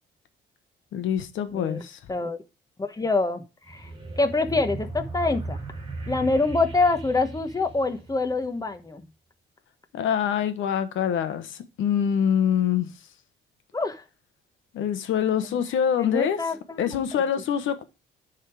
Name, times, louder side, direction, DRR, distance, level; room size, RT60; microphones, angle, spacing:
voice 1, 0.9-2.0 9.9-12.9 14.7-16.4 16.8-17.8, left 8 dB, 80° left, 1.0 m, -25 dB
voice 2, 1.5-1.8 2.1-2.4 2.8-3.9 4.2-5.6 6.1-9.0 13.7-14.0 16.0-17.0, left 3 dB, 20° left, 1.1 m, -25 dB
sound 1, 3.7-8.6, right 2 dB, 25° right, 2.0 m, -37 dB
10.0 x 3.7 x 4.7 m
cardioid pair, 90°, 20 cm